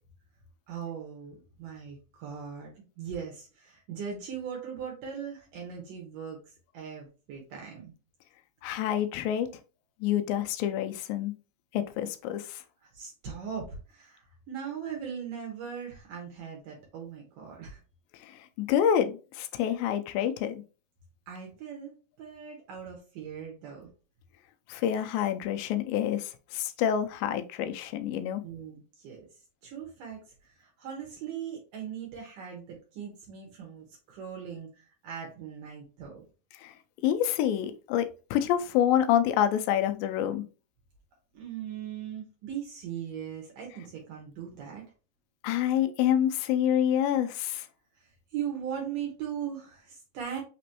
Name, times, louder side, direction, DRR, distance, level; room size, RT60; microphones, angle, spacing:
voice 1, 0.7-7.9 12.8-17.8 21.3-21.9 22.2-23.9 28.4-29.3 29.6-36.2 41.3-44.8 48.0-50.4, right 8 dB, 70° right, 0 dB, 2.5 m, -39 dB
voice 2, 8.6-9.5 10.0-11.3 11.7-12.6 18.2-20.6 24.7-28.4 36.6-36.7 37.0-40.4 45.4-47.7, left 10 dB, 85° left, 8 dB, 2.1 m, -27 dB
6.0 x 3.0 x 2.9 m, 0.34 s
omnidirectional pair, 4.5 m